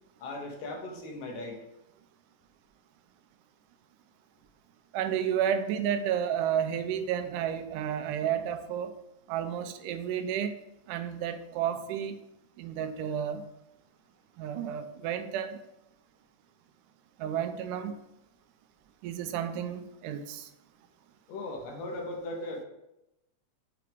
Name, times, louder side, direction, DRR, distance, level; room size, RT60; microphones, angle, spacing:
voice 1, 0.2-1.6 21.3-22.6, left 2 dB, 70° left, 2 dB, 2.2 m, -38 dB
voice 2, 4.9-8.9 9.3-10.5 10.9-12.2 12.6-13.4 14.4-15.6 17.2-17.9 19.0-20.5, right 9 dB, 90° right, 9 dB, 2.1 m, -31 dB
7.6 x 4.7 x 3.5 m, 0.87 s
omnidirectional pair, 3.6 m